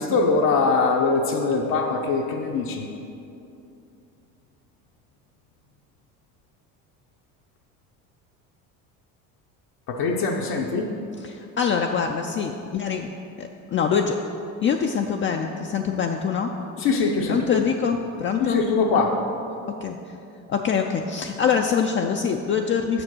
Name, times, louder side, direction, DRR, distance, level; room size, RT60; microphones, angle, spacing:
voice 1, 0.0-2.9 9.9-10.9 16.8-17.6 18.4-19.2, left 4 dB, 60° left, 0 dB, 0.8 m, -22 dB
voice 2, 11.2-13.1 13.4-14.2 14.6-16.5 17.3-18.6 19.8-20.2 20.5-23.0, left 6 dB, 30° left, 3 dB, 0.4 m, -24 dB
6.4 x 5.1 x 6.2 m, 2.7 s
supercardioid pair, 90°, 39 cm